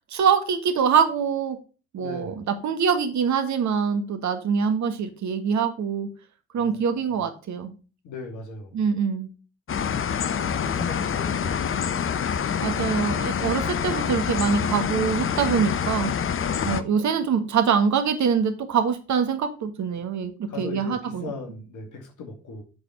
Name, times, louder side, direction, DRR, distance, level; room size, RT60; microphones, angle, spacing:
voice 1, 0.1-1.6 1.9-6.1 6.5-7.7 8.7-9.3 12.6-16.1 16.6-21.3, right 6 dB, 55° right, 8 dB, 1.5 m, -24 dB
voice 2, 2.0-2.4 6.5-7.1 8.0-8.8 10.5-11.7 16.4-16.8 20.5-22.6, left 4 dB, 65° left, 4 dB, 2.2 m, -38 dB
sound 1, 9.7-16.8, left 7 dB, 40° left, 0.8 m, -26 dB
7.8 x 4.1 x 5.7 m, 0.34 s
hypercardioid pair, 45°, 34 cm